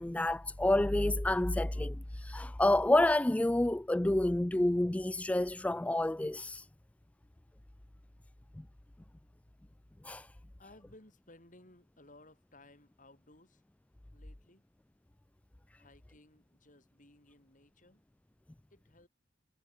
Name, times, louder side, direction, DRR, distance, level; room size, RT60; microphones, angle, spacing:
voice 1, 0.0-6.7 8.6-8.7 10.0-10.3, left 1 dB, 10° left, 0.3 m, -29 dB
voice 2, 10.6-13.6 14.1-14.6 15.7-18.0 18.7-19.1, left 2 dB, 45° left, 6.8 m, -59 dB
head